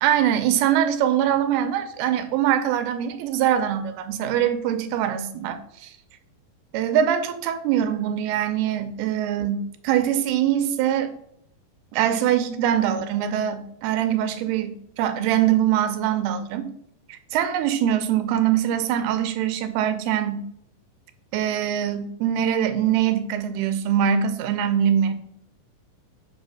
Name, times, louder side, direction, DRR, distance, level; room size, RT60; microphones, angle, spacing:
voice 1, 0.0-5.9 6.7-11.1 11.9-16.7 17.1-20.4 21.3-25.1, right 10 dB, 85° right, 10 dB, 2.6 m, -23 dB
8.0 x 3.2 x 5.5 m, 0.68 s
omnidirectional pair, 4.4 m